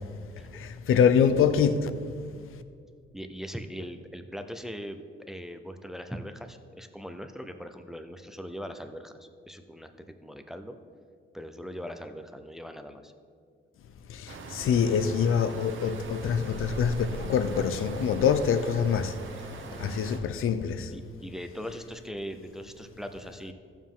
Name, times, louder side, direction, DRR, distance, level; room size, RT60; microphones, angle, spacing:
voice 1, 0.5-1.9 14.1-21.0, left 7 dB, 80° left, 0.6 m, -25 dB
voice 2, 3.1-9.9 10.2-10.8 11.3-13.1 19.6-20.1 20.9-23.5, equal, ahead, 0.5 m, -40 dB
sound 1, 14.3-20.2, right 3 dB, 65° right, 1.1 m, -41 dB
15.0 x 7.2 x 3.7 m
wide cardioid pair, 150°, 21 cm